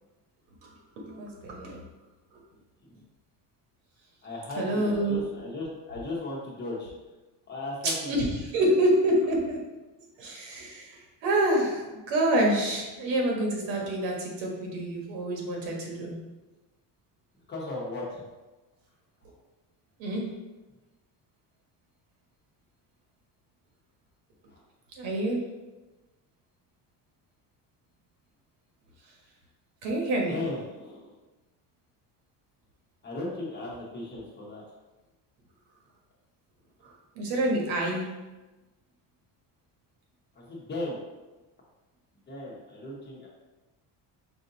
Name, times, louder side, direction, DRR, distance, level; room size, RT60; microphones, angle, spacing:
voice 1, 1.0-1.8 4.6-5.2 7.8-9.6 10.2-16.2 20.0-20.3 25.0-25.4 29.8-30.4 37.1-38.1, right 1 dB, 85° right, -1 dB, 1.4 m, -27 dB
voice 2, 4.2-6.9 7.5-8.3 17.5-18.2 24.5-24.6 30.3-31.2 33.0-34.6 40.3-41.0 42.3-43.3, left 2 dB, 25° left, -4 dB, 0.9 m, -36 dB
5.1 x 2.7 x 3.9 m, 1.1 s
cardioid pair, 175°, 44 cm